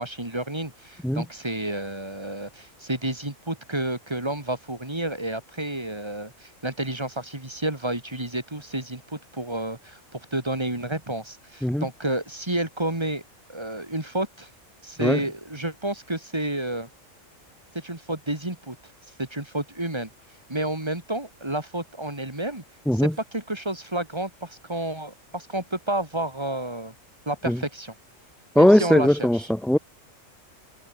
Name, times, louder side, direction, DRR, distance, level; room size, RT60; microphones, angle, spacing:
voice 1, 0.0-13.2 13.5-14.5 14.8-16.9 17.7-18.8 19.2-20.1 20.5-22.6 22.9-26.9 27.3-27.9 28.6-29.5, right 1 dB, 20° right, 2.7 m, -30 dB
voice 2, 28.5-29.8, left 1 dB, ahead, 0.8 m, -19 dB
omnidirectional pair, 1.4 m